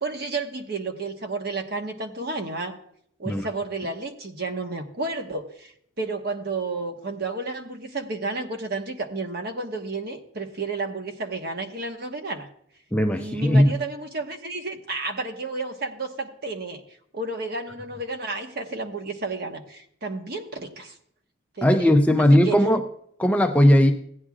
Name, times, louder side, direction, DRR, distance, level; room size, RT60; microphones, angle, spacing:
voice 1, 0.0-2.7 3.2-12.5 13.2-16.8 17.1-20.9 21.6-21.8 22.3-22.6, right 3 dB, 50° right, 4 dB, 1.2 m, -31 dB
voice 2, 12.9-13.7 21.6-22.8 23.2-23.9, equal, 5° left, 4 dB, 0.5 m, -18 dB
16.5 x 9.9 x 2.4 m, 0.66 s
head